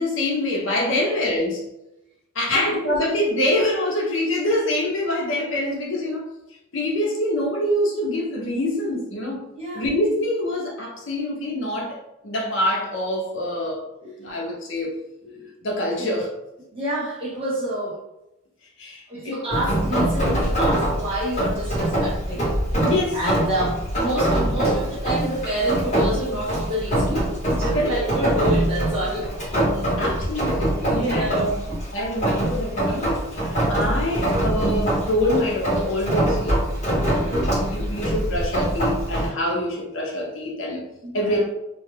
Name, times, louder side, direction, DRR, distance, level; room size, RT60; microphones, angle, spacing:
voice 1, 0.0-1.6 2.3-6.3 6.7-9.4 9.7-13.8 14.2-15.0 15.6-16.3 18.8-19.4 22.8-23.2 27.7-28.0 29.8-31.3 31.9-36.8 37.1-37.3 37.6-40.8 41.1-41.4, left 1 dB, 60° left, -2 dB, 0.7 m, -25 dB
voice 2, 2.5-2.9 9.6-9.9 14.0-14.1 15.2-15.4 16.0-16.1 16.7-18.0 19.1-22.5 23.1-29.3 30.9-31.6 37.0-37.4 41.0-41.4, right 1 dB, 25° right, -6 dB, 1.0 m, -28 dB
Rain, 19.5-39.3, right 1 dB, 30° left, 1.0 m, -24 dB
2.3 x 2.2 x 3.2 m, 0.91 s
head